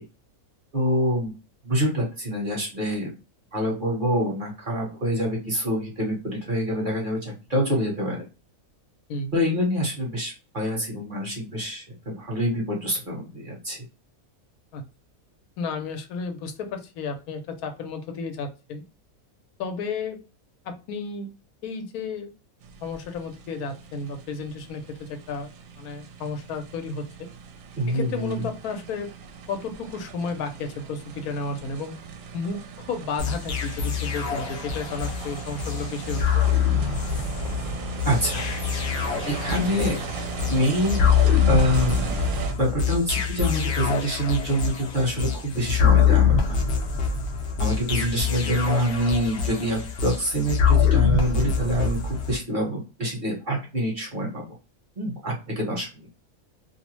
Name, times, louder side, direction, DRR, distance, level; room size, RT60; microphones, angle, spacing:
voice 1, 0.7-1.3 1.6-3.1 3.5-8.3 9.3-13.9 27.8-28.5 38.0-38.4 39.3-40.0 40.5-41.0 41.5-42.2 42.5-46.6 47.6-54.4 55.0-56.1, equal, 40° right, -2 dB, 0.9 m, -26 dB
voice 2, 15.6-18.8 19.6-20.2 20.6-21.3 21.6-22.3 22.8-27.3 27.9-29.1 29.5-32.0 32.3-36.4, left 4 dB, 85° left, 6 dB, 1.1 m, -32 dB
sound 1, 22.6-42.5, right 6 dB, 70° right, 0.9 m, -38 dB
sound 2, 33.2-52.4, left 7 dB, 60° left, 0.7 m, -24 dB
2.6 x 2.0 x 2.9 m, 0.32 s
omnidirectional pair, 1.5 m